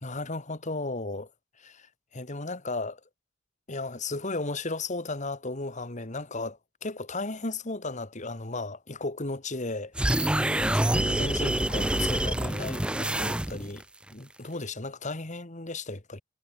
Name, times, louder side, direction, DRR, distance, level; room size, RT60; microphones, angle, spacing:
voice 1, 0.0-1.3 1.6-3.0 3.7-10.4 10.7-13.8 14.1-16.2, left 2 dB, 35° left, 2.2 m, -35 dB
sound 1, 9.9-13.8, right 1 dB, 5° right, 0.4 m, -26 dB
head